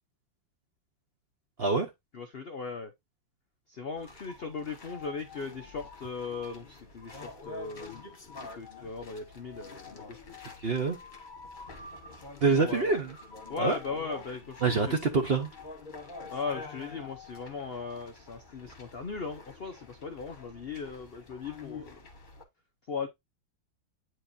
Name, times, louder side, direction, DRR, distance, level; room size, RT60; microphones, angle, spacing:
voice 1, 1.6-1.9 10.6-11.0 12.4-13.2 13.6-13.8 14.6-15.5, right 4 dB, 45° right, 0.9 m, -26 dB
voice 2, 2.1-2.9 3.7-10.2 12.5-12.9 13.5-14.9 16.3-22.0 22.9-23.1, left 5 dB, 65° left, 0.5 m, -38 dB
sound 1, 4.0-22.4, left 3 dB, 30° left, 1.2 m, -47 dB
8.8 x 4.6 x 2.6 m
omnidirectional pair, 2.1 m